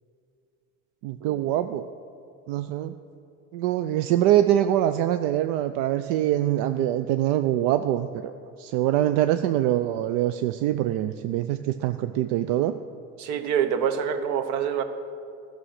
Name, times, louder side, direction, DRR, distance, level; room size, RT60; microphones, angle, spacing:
voice 1, 1.0-1.8 2.5-2.9 3.5-8.3 8.6-12.8, right 12 dB, 80° right, 10 dB, 0.5 m, -24 dB
voice 2, 13.2-14.8, right 8 dB, 60° right, 9 dB, 0.9 m, -26 dB
13.0 x 6.3 x 6.4 m, 2.5 s
cardioid pair, 130°, 34 cm